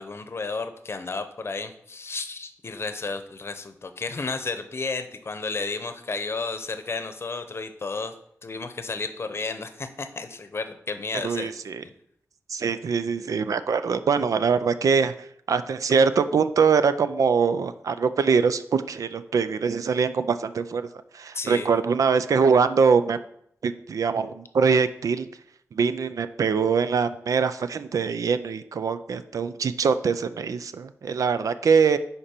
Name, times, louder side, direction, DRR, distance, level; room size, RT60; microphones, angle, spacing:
voice 1, 0.0-8.1 8.4-11.5 11.8-11.9 21.3-21.7, left 4 dB, 50° left, 9 dB, 0.8 m, -32 dB
voice 2, 11.2-11.8 12.5-20.9 21.1-23.2 23.6-25.3 25.7-32.0, right 5 dB, 80° right, 11 dB, 0.4 m, -23 dB
10.0 x 4.3 x 4.4 m, 0.71 s
wide cardioid pair, 105°, 6 cm